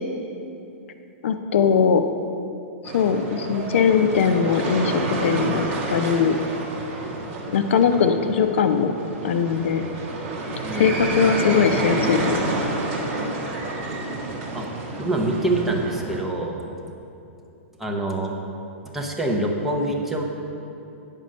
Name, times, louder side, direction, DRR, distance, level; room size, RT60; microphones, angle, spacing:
voice 1, 1.2-2.0 2.9-5.6 5.9-6.4 7.5-8.9 9.2-9.9 10.7-12.6, left 6 dB, 65° left, 8 dB, 0.6 m, -20 dB
sound 1, 2.8-16.2, right 2 dB, 35° right, 1.5 m, -29 dB
voice 2, 10.6-10.9 14.5-14.7 15.0-16.6 17.8-18.4 18.9-20.2, right 2 dB, 5° right, -1 dB, 0.8 m, -25 dB
9.2 x 5.2 x 6.4 m, 2.7 s
hypercardioid pair, 160°, 7 cm